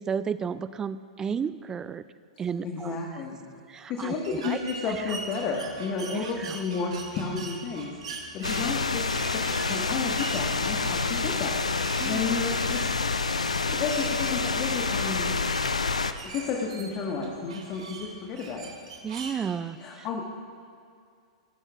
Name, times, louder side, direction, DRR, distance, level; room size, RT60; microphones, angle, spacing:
voice 1, 0.0-2.0 2.4-3.0 3.7-4.6 4.9-5.2 6.1-6.6 12.0-12.2 19.0-20.1, right 6 dB, 15° right, 15 dB, 0.4 m, -33 dB
voice 2, 2.6-3.4 3.9-9.4 9.7-11.6 12.0-12.9 13.6-15.3 16.2-18.7 19.8-20.2, left 5 dB, 35° left, 0 dB, 1.6 m, -32 dB
sound 1, 4.2-19.4, right 4 dB, 65° right, 2.4 m, -42 dB
sound 2, 8.4-16.1, left 4 dB, 80° left, 0.6 m, -28 dB
28.5 x 11.5 x 2.5 m, 2.3 s
figure-of-eight pair, 105°, 3 cm